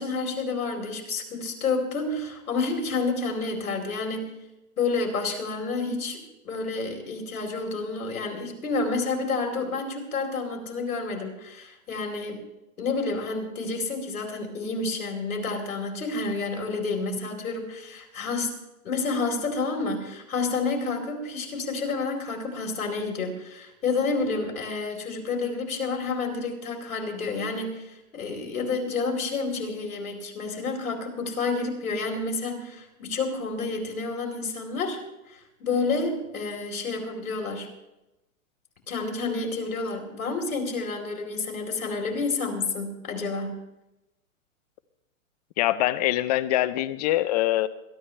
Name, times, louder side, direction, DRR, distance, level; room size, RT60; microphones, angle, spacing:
voice 1, 0.0-4.2 4.8-12.4 12.8-18.5 18.8-35.0 35.3-37.7 38.9-43.6, left 3 dB, 80° left, 2 dB, 4.5 m, -29 dB
voice 2, 45.6-47.7, left 15 dB, 30° left, 17 dB, 0.5 m, -24 dB
21.5 x 12.5 x 3.3 m, 0.94 s
hypercardioid pair, 140°, 42 cm